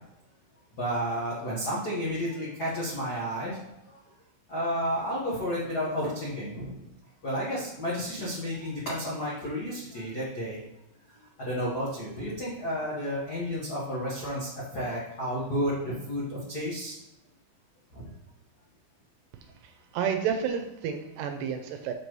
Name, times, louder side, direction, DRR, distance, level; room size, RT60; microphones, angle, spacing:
voice 1, 0.7-4.0 4.5-6.8 7.2-10.6 11.1-16.9 17.9-18.1, equal, 75° left, -7 dB, 0.8 m, -32 dB
voice 2, 19.6-21.9, right 7 dB, 80° right, 6 dB, 2.1 m, -30 dB
6.7 x 5.9 x 3.1 m, 0.90 s
omnidirectional pair, 4.1 m